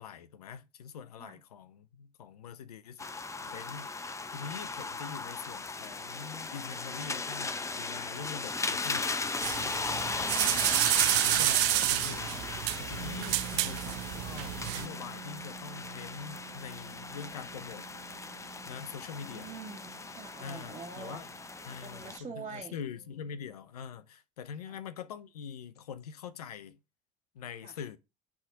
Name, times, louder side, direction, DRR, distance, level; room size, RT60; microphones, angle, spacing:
voice 1, 0.0-9.4 9.6-9.9 10.5-10.7 11.2-17.9 18.6-19.5 20.4-21.3 21.7-26.8 27.3-28.0, left 7 dB, 90° left, 0.6 m, -44 dB
sound 1, 3.0-22.2, left 3 dB, 15° left, 0.6 m, -37 dB
sound 2, 9.4-14.9, right 19 dB, 65° right, 0.4 m, -29 dB
voice 2, 9.8-10.8 19.0-21.2 21.7-22.8 24.6-24.8 27.6-27.8, right 5 dB, 30° right, 1.5 m, -46 dB
sound 3, 13.0-23.5, right 12 dB, 90° right, 1.3 m, -49 dB
6.1 x 3.6 x 5.1 m
hypercardioid pair, 70°, 19 cm